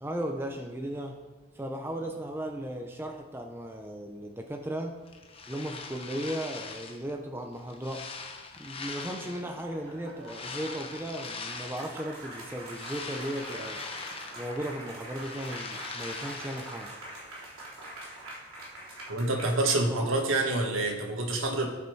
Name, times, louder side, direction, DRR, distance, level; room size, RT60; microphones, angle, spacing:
voice 1, 0.0-1.2 1.5-5.0 5.5-8.1 8.6-13.8 14.3-16.9 19.9-20.1, right 1 dB, 10° right, 3 dB, 0.7 m, -36 dB
sound 1, 5.1-7.1 7.5-9.6 10.2-12.0 12.5-14.7 15.0-16.9, left 4 dB, 25° left, 1.0 m, -41 dB
sound 2, 9.1-20.1, right 1 dB, 85° right, 3.5 m, -44 dB
voice 2, 19.1-21.7, right 2 dB, 70° right, 2 dB, 1.8 m, -27 dB
17.5 x 5.9 x 4.7 m, 1.3 s
head